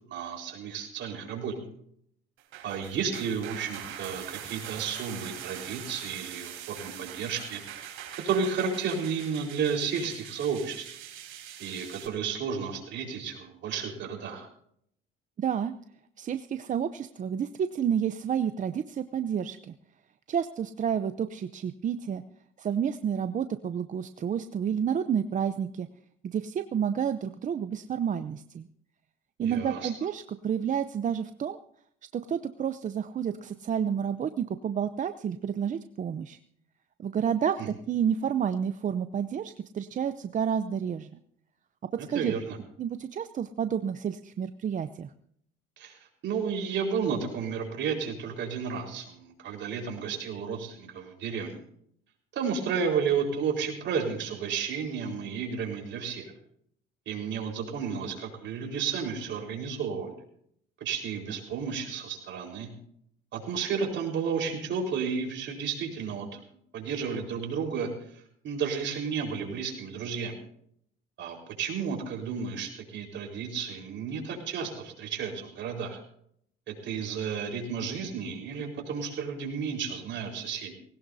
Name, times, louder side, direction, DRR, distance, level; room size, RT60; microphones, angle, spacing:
voice 1, 0.1-1.5 2.6-7.6 8.2-10.9 11.6-14.5 29.4-29.9 37.6-37.7 42.1-42.6 45.8-51.6 52.3-56.3 57.1-60.1 60.8-62.7 63.3-66.4 66.7-67.9 68.4-70.4 71.2-76.0 76.7-80.8, right 6 dB, 60° right, 2 dB, 4.5 m, -32 dB
sound 1, 2.4-12.1, right 10 dB, 80° right, 4.0 m, -43 dB
voice 2, 15.4-15.7 16.2-19.7 20.3-22.2 22.6-25.9 26.2-28.7 29.4-31.6 32.1-36.4 37.0-41.1 42.1-42.3 42.8-45.1, right 8 dB, 35° right, 10 dB, 0.7 m, -30 dB
19.5 x 17.5 x 2.7 m, 0.68 s
cardioid pair, 105°, 21 cm